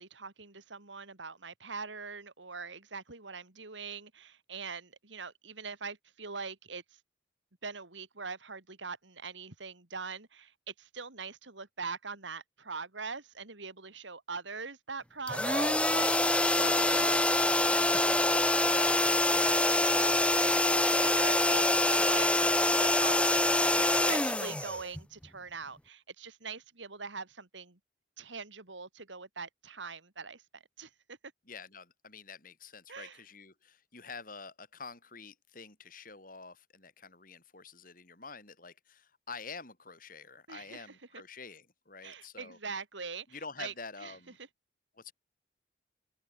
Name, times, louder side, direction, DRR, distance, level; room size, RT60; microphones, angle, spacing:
voice 1, 0.0-6.8 7.6-19.6 19.9-23.4 23.7-27.8 28.2-31.2 32.9-33.2 40.5-41.2 42.0-43.3 43.6-43.7 44.0-44.1, right 4 dB, 80° right, 2.8 m, -42 dB
sound 1, 15.3-25.2, left 1 dB, 5° left, 1.0 m, -25 dB
voice 2, 31.5-42.6 43.3-44.4 44.9-45.1, left 4 dB, 45° left, 5.4 m, -47 dB
open air
head